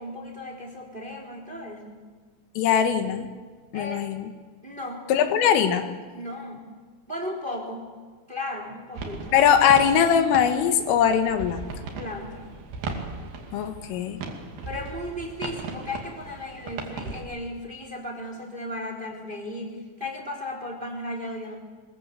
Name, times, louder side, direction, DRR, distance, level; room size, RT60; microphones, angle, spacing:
voice 1, 0.0-2.0 3.7-4.0 4.6-5.1 6.1-6.7 7.1-7.9 8.3-9.4 11.9-12.4 14.6-21.6, left 1 dB, 10° right, 2 dB, 3.0 m, -35 dB
voice 2, 2.6-3.3 3.7-4.3 5.1-5.9 9.3-11.7 13.5-14.2, left 8 dB, 80° left, 7 dB, 4.1 m, -21 dB
sound 1, 8.9-17.2, right 4 dB, 55° right, 3.9 m, -37 dB
24.5 x 21.5 x 8.3 m, 1.5 s
omnidirectional pair, 5.7 m